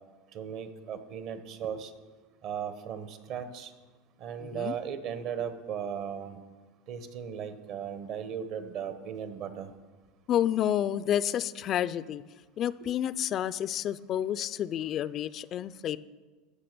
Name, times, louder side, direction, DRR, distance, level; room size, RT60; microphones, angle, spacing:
voice 1, 0.3-1.9 2.4-3.7 4.2-6.4 6.9-9.7, right 8 dB, 55° right, 11 dB, 1.1 m, -37 dB
voice 2, 4.4-4.8 10.3-12.2 12.6-16.0, left 10 dB, 40° left, 16 dB, 0.4 m, -30 dB
13.5 x 5.9 x 6.8 m, 1.3 s
supercardioid pair, 110°, 0 cm